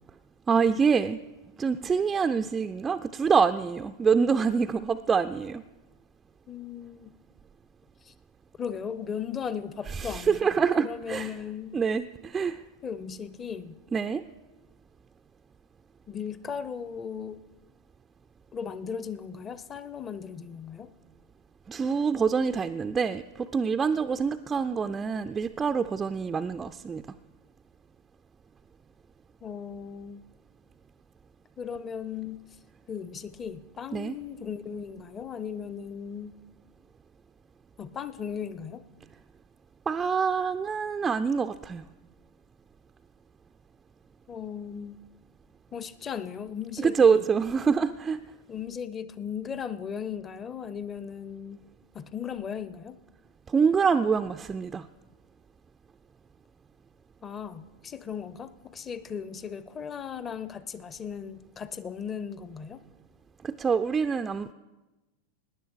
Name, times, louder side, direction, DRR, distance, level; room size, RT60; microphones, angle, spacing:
voice 1, 0.5-1.2 1.6-5.6 9.9-11.3 11.7-12.6 13.9-14.2 21.7-27.0 33.9-34.1 39.9-41.8 46.8-48.2 53.5-54.9 63.4-64.5, right 6 dB, 15° right, 7 dB, 0.4 m, -25 dB
voice 2, 6.5-7.1 8.0-8.1 8.6-11.7 12.8-13.8 16.1-17.4 18.5-20.9 29.4-30.2 31.6-32.4 32.9-36.4 37.8-38.8 44.3-45.0 45.7-47.3 48.5-51.6 51.9-53.0 57.2-62.8, left 7 dB, 20° left, 14 dB, 0.6 m, -37 dB
18.0 x 10.0 x 4.7 m, 1.1 s
figure-of-eight pair, 90°, 0 cm